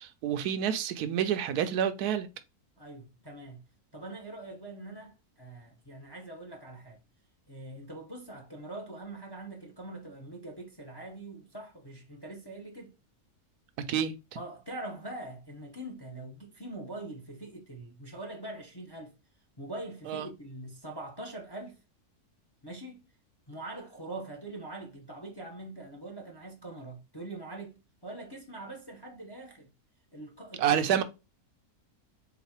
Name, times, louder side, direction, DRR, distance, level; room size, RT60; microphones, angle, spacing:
voice 1, 0.0-2.3 13.9-14.1 20.1-20.3 30.6-31.0, right 9 dB, 80° right, 1.1 m, -28 dB
voice 2, 2.8-3.6 3.9-7.0 7.5-13.0 14.3-19.1 19.6-21.8 22.6-23.0 23.5-29.7 30.1-30.9, right 2 dB, 20° left, 0.6 m, -43 dB
4.0 x 3.9 x 2.9 m
omnidirectional pair, 1.6 m